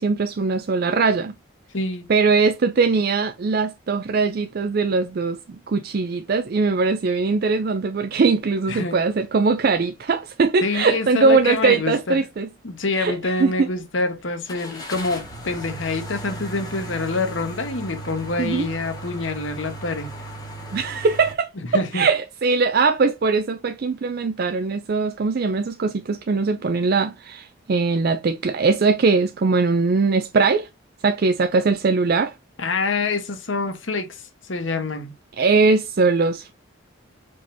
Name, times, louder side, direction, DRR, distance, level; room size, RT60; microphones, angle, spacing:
voice 1, 0.0-1.3 2.1-5.4 5.7-12.5 12.9-13.7 18.4-18.7 20.7-30.7 31.0-32.3 35.4-36.5, right 4 dB, 50° right, 0.4 m, -21 dB
voice 2, 1.7-2.1 8.7-9.0 10.6-12.2 12.6-20.1 21.7-22.1 32.6-35.1, left 3 dB, 70° left, 1.2 m, -26 dB
sound 1, 11.2-11.4 11.9-12.0 14.5-21.3, right 1 dB, 20° left, 1.6 m, -36 dB
4.8 x 3.8 x 2.6 m
head